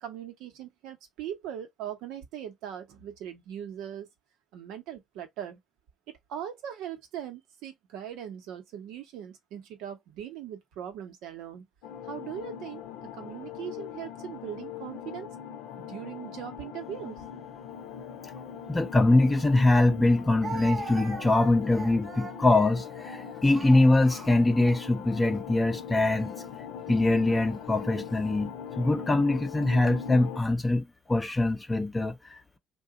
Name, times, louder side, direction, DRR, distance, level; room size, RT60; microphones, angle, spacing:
voice 1, 0.0-4.1 4.5-5.6 6.1-11.6 12.0-12.8 13.1-15.3 15.8-17.2, right 10 dB, 80° right, 0.9 m, -40 dB
sound 1, 11.8-30.4, left 8 dB, 85° left, 0.6 m, -41 dB
voice 2, 18.7-26.3 26.9-32.6, left 2 dB, 20° left, 0.6 m, -23 dB
Speech, 19.3-19.4 20.4-25.3 26.1-26.3 27.3-27.9, right 4 dB, 40° right, 0.6 m, -41 dB
2.7 x 2.3 x 3.7 m
supercardioid pair, 65°, 0 cm